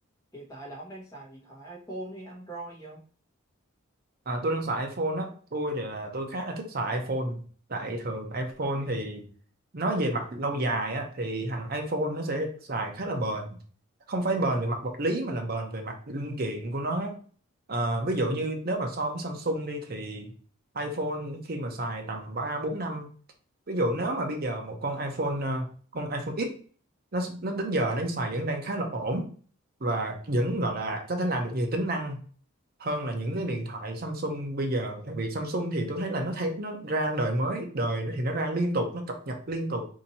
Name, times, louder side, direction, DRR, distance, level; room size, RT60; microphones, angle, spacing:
voice 1, 0.3-3.0, right 2 dB, 15° left, -4 dB, 1.1 m, -41 dB
voice 2, 4.3-7.4 7.7-9.2 9.7-13.6 14.1-17.2 17.7-20.3 20.7-23.1 23.7-26.6 27.1-29.3 29.8-32.2 32.8-39.9, right 1 dB, 45° right, 4 dB, 0.7 m, -30 dB
2.8 x 2.7 x 4.1 m, 0.43 s
head